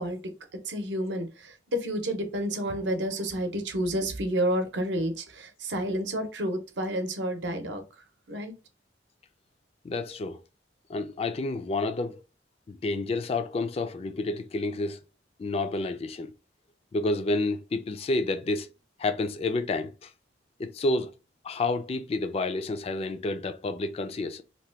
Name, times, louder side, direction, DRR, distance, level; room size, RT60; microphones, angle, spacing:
voice 1, 0.0-8.5, right 1 dB, 75° right, 0.7 m, -30 dB
voice 2, 9.8-10.4 10.9-12.2 12.7-15.0 15.4-16.3 16.9-18.7 19.0-20.1 20.6-21.1 21.4-24.4, left 2 dB, 35° left, 0.3 m, -29 dB
2.9 x 2.2 x 3.2 m
head